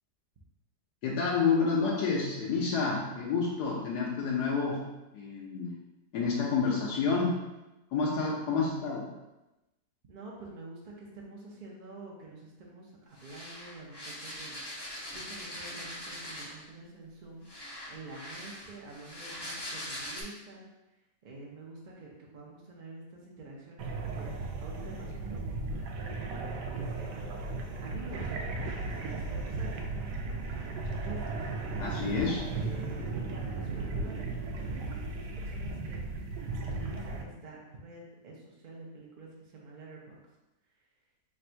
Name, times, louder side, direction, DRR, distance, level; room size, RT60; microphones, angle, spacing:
voice 1, 1.0-5.7 6.1-7.4 7.9-9.1 31.8-32.5, left 4 dB, 75° left, -4 dB, 1.2 m, -29 dB
voice 2, 10.1-14.6 15.1-17.4 17.9-20.7 21.2-27.1 27.8-31.4 32.5-36.0 36.7-40.2, right 2 dB, 60° right, -3 dB, 0.5 m, -48 dB
sound 1, 13.2-16.7 17.4-20.2, left 1 dB, 35° left, 0.4 m, -42 dB
sound 2, 23.8-37.2, right 3 dB, 85° right, 1.2 m, -36 dB
3.4 x 2.6 x 4.4 m, 0.98 s
omnidirectional pair, 1.8 m